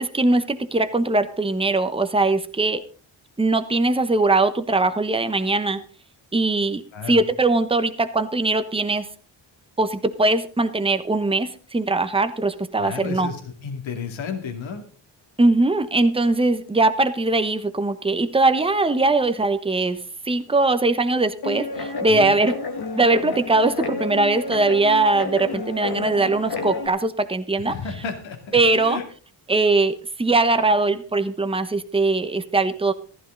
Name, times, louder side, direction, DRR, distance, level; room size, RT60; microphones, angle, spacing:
voice 1, 0.0-2.8 3.4-5.8 6.3-9.1 9.8-13.3 15.4-20.0 20.3-22.5 22.9-27.7 28.5-29.0 29.5-32.9, right 2 dB, 10° right, 10 dB, 1.1 m, -21 dB
voice 2, 12.8-14.8 22.1-22.3 27.6-29.0, left 6 dB, 80° left, 4 dB, 2.7 m, -32 dB
Guitar, 21.4-26.9, left 3 dB, 55° left, 1.9 m, -30 dB
15.0 x 12.5 x 4.0 m, 0.39 s
wide cardioid pair, 120°, 46 cm